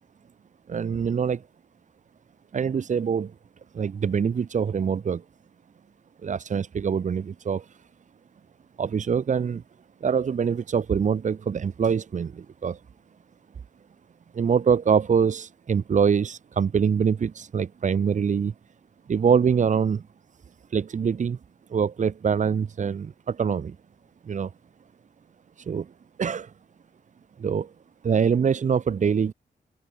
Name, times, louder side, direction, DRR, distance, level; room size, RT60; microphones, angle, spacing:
voice 1, 0.7-1.4 2.5-3.3 3.7-5.2 6.2-7.7 8.8-9.6 10.0-12.8 14.3-18.5 19.1-20.0 20.7-21.4 21.7-23.8 24.3-24.5 25.7-25.9 26.2-26.5 27.4-27.7 28.0-29.3, right 6 dB, 45° right, 2.4 m, -24 dB
open air
wide cardioid pair, 150°, 17 cm